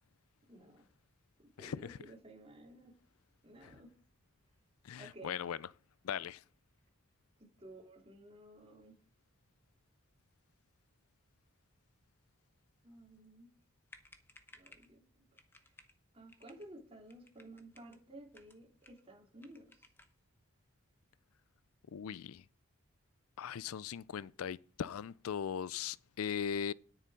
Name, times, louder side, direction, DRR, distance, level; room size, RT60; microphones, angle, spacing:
voice 1, 0.5-0.9 1.4-2.9 3.4-3.9 5.0-5.4 7.6-9.0 12.8-13.5 14.5-15.2 15.6-15.7 16.1-19.8, right 1 dB, 25° right, 3.2 m, -54 dB
voice 2, 1.6-2.0 3.6-3.7 4.8-5.6 6.0-6.4 21.9-22.4 23.4-26.7, left 8 dB, 80° left, 0.4 m, -39 dB
sound 1, 13.6-13.7 13.9-14.9 15.4-16.0 16.3-16.7 17.1-18.0 18.3-19.1 19.4-20.2, left 2 dB, 10° left, 0.9 m, -61 dB
10.0 x 9.0 x 5.0 m
head